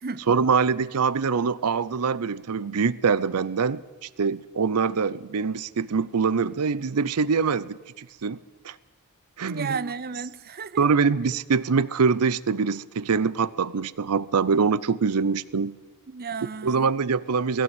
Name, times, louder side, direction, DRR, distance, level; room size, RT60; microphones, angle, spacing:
voice 1, 0.3-8.4 8.6-8.8 9.4-9.9 10.8-15.7 16.6-17.6, right 5 dB, 90° right, 0.6 m, -24 dB
voice 2, 9.4-10.8 16.1-16.9, right 5 dB, 45° right, 0.6 m, -33 dB
19.5 x 15.5 x 9.1 m
head